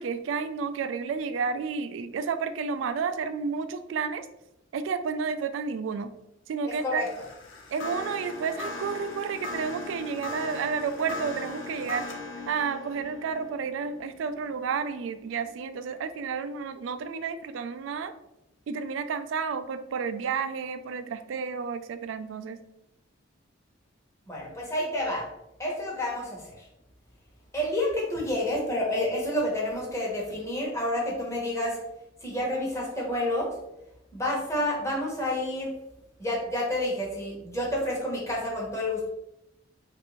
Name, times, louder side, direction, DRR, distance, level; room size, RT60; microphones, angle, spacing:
voice 1, 0.0-4.3 4.7-6.1 6.5-7.0 7.7-12.1 12.5-18.1 18.7-22.6, right 5 dB, 75° right, 11 dB, 0.3 m, -31 dB
voice 2, 6.6-7.0 24.3-25.2 25.6-26.6 27.5-31.8 32.2-33.5 34.1-35.7 36.2-39.1, left 1 dB, 15° left, -4 dB, 1.0 m, -29 dB
sound 1, 6.9-16.2, left 3 dB, 85° left, 0.5 m, -39 dB
3.2 x 2.6 x 3.0 m, 0.87 s
head